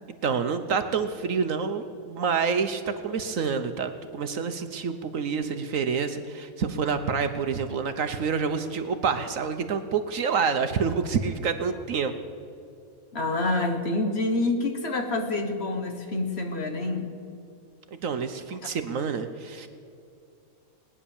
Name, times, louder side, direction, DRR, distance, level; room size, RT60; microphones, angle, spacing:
voice 1, 0.2-12.1 17.9-19.7, right 5 dB, 60° right, 8 dB, 1.1 m, -28 dB
voice 2, 13.1-17.1, left 2 dB, 45° left, 5 dB, 1.4 m, -27 dB
19.5 x 9.9 x 7.1 m, 2.5 s
omnidirectional pair, 1.7 m